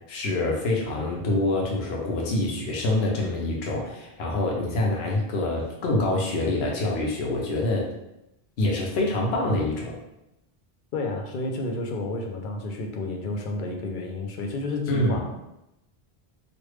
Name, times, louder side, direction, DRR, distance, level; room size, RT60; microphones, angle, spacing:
voice 1, 0.1-7.9 8.6-10.0 14.9-15.2, left 2 dB, 80° left, -2 dB, 0.9 m, -26 dB
voice 2, 10.9-15.4, left 2 dB, 60° left, 2 dB, 0.6 m, -31 dB
3.2 x 2.5 x 3.1 m, 0.88 s
omnidirectional pair, 1.0 m